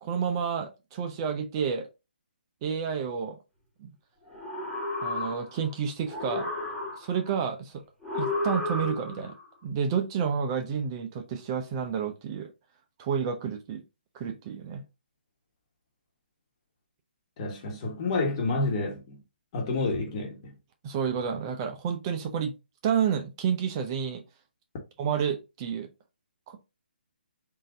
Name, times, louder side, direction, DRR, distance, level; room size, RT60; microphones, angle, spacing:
voice 1, 0.0-1.9 2.6-3.4 3.8-3.9 5.0-6.5 7.0-7.8 8.1-9.3 9.6-12.5 13.0-13.8 14.1-14.8 20.8-22.5 22.8-24.2 25.0-25.9 26.5-26.6, right 7 dB, 25° right, 0.5 m, -30 dB
sound 1, 4.3-5.7 6.1-7.3 8.0-9.3, left 2 dB, ahead, 1.3 m, -32 dB
voice 2, 17.4-19.2 19.5-20.5, left 3 dB, 35° left, 1.2 m, -29 dB
3.7 x 2.6 x 3.8 m
figure-of-eight pair, 145°, 6 cm